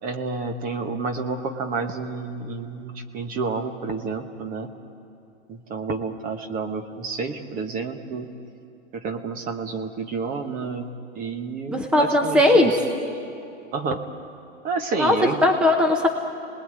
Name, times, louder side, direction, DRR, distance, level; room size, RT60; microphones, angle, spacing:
voice 1, 0.0-4.7 5.5-8.3 8.9-12.8 13.7-14.0 14.6-15.4, right 4 dB, 20° right, 7 dB, 1.2 m, -30 dB
voice 2, 11.7-12.7 15.0-16.1, left 1 dB, 5° right, 4 dB, 1.0 m, -18 dB
28.5 x 20.0 x 9.5 m, 2.7 s
hypercardioid pair, 150°, 38 cm